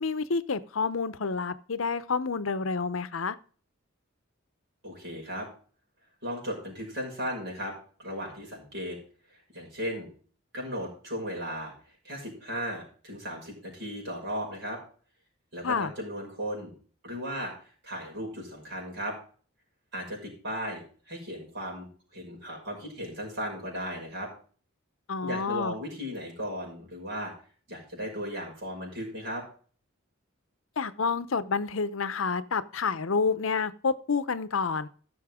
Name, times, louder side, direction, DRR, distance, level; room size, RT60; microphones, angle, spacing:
voice 1, 0.0-3.4 15.6-15.9 25.1-25.7 30.8-34.9, left 5 dB, 75° left, 0.7 m, -29 dB
voice 2, 4.8-5.5 6.2-7.7 8.0-9.0 9.5-10.1 10.5-11.7 12.0-14.8 15.5-16.7 17.0-17.5 17.8-19.2 19.9-21.9 22.1-24.3 25.2-27.3 27.7-29.4, equal, 60° right, 6.0 m, -36 dB
15.5 x 6.6 x 3.6 m
head